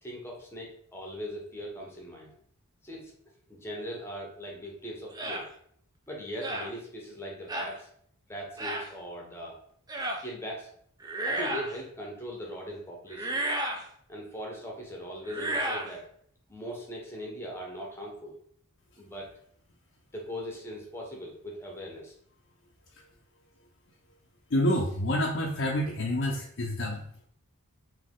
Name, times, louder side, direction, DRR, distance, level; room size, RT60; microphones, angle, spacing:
voice 1, 0.0-2.3 2.8-3.1 3.5-5.5 6.1-7.9 8.3-9.6 10.2-10.7 11.3-13.4 14.1-16.1 16.5-18.4 19.0-19.3 20.1-22.1, equal, 10° left, -1 dB, 0.9 m, -40 dB
sound 1, 5.1-5.4 6.4-6.7 7.5-7.7 8.6-8.9 9.9-10.2 11.0-11.8 13.1-13.8 15.2-15.9, right 1 dB, 15° right, 0.4 m, -32 dB
voice 2, 24.5-27.3, equal, 50° left, -1 dB, 0.6 m, -28 dB
4.2 x 2.8 x 3.6 m, 0.65 s
head